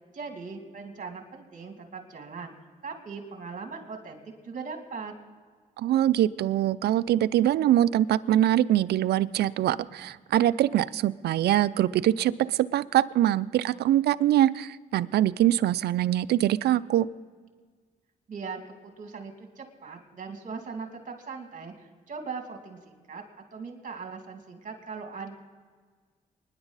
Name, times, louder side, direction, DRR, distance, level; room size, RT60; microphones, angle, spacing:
voice 1, 0.1-2.5 2.8-5.1 18.3-23.2 23.5-25.4, right 5 dB, 50° right, 4 dB, 2.5 m, -40 dB
voice 2, 5.8-17.1, right 12 dB, 80° right, 16 dB, 0.4 m, -23 dB
24.5 x 10.5 x 4.1 m, 1.5 s
cardioid pair, 70°, 16 cm